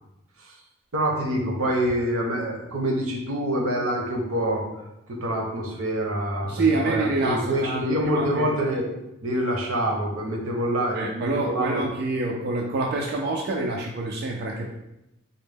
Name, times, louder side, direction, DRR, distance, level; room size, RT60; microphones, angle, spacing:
voice 1, 0.9-4.7 5.1-8.9 9.2-11.8, equal, 80° right, 0 dB, 0.7 m, -26 dB
voice 2, 6.4-8.5 10.9-14.7, right 2 dB, 50° right, -1 dB, 0.3 m, -26 dB
3.9 x 2.0 x 3.4 m, 0.90 s
head